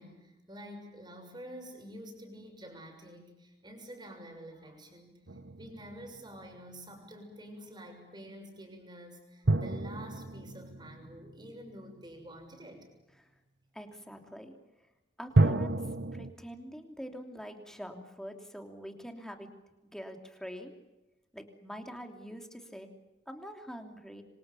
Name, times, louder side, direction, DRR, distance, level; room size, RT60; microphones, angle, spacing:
voice 1, 0.0-5.2 5.6-12.8, equal, 25° right, 4 dB, 6.8 m, -48 dB
sound 1, 5.3-6.6 9.4-12.0 15.4-16.3, right 2 dB, 75° right, 1.2 m, -30 dB
voice 2, 13.7-14.5 15.2-15.8 16.1-19.5 19.9-20.7 21.3-22.9 23.3-24.2, equal, 5° left, 4 dB, 3.0 m, -44 dB
27.0 x 25.0 x 7.1 m, 1.0 s
head